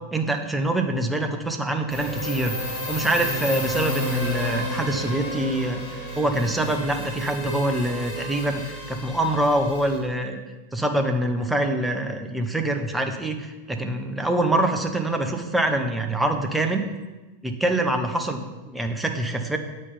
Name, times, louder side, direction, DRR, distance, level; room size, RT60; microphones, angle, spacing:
voice 1, 0.1-10.4 10.7-16.8 17.4-19.6, right 1 dB, 5° right, 4 dB, 0.9 m, -25 dB
sound 1, 1.9-10.0, left 1 dB, 50° left, 2.9 m, -31 dB
8.3 x 5.4 x 5.5 m, 1.1 s
figure-of-eight pair, 90°, 0 cm